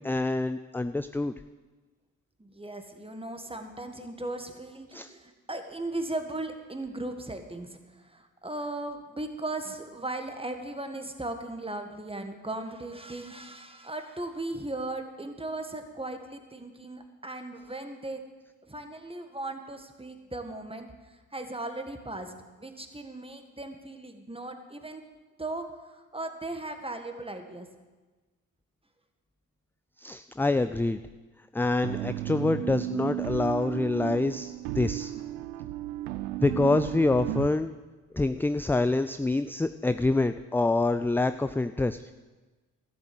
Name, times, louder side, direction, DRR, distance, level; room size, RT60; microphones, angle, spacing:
voice 1, 0.0-1.3 4.9-5.1 30.0-31.0 31.5-35.1 36.4-37.7 38.1-42.1, left 2 dB, 5° left, 11 dB, 0.3 m, -26 dB
voice 2, 2.4-18.2 18.6-22.3 22.6-25.0 25.4-27.7, right 2 dB, 15° right, 6 dB, 1.8 m, -37 dB
sound 1, 31.8-37.5, right 16 dB, 85° right, 0.5 m, -34 dB
12.5 x 7.5 x 7.9 m, 1.2 s
hypercardioid pair, 40°, 38 cm